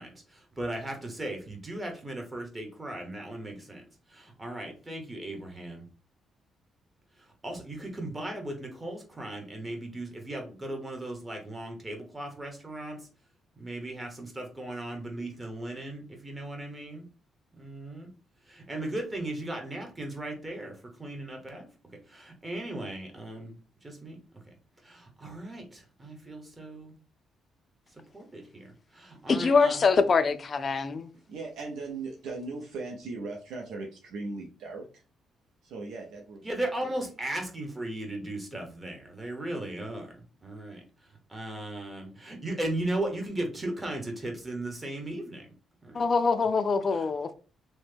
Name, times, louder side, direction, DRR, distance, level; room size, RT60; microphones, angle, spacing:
voice 1, 0.0-3.8 4.1-5.8 7.4-13.0 13.6-17.0 17.5-18.1 18.5-21.7 22.1-24.2 24.8-26.9 28.1-28.7 28.9-29.8 36.4-40.8 41.3-45.5 45.8-46.1 46.9-47.1, right 1 dB, 20° right, 1.0 m, -37 dB
voice 2, 29.3-31.1 45.9-47.3, left 4 dB, 40° left, 0.4 m, -24 dB
voice 3, 31.3-35.0 35.6-36.4, right 3 dB, 80° right, 0.6 m, -38 dB
3.0 x 2.1 x 3.3 m
cardioid pair, 90°, 0 cm